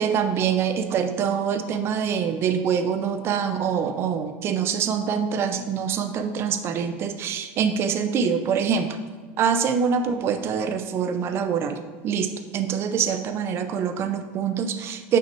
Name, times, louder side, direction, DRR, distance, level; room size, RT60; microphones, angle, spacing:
voice 1, 0.0-9.0 9.4-15.2, right 7 dB, 40° right, 9 dB, 0.7 m, -25 dB
6.3 x 5.7 x 4.6 m, 1.4 s
supercardioid pair, 135°, 6 cm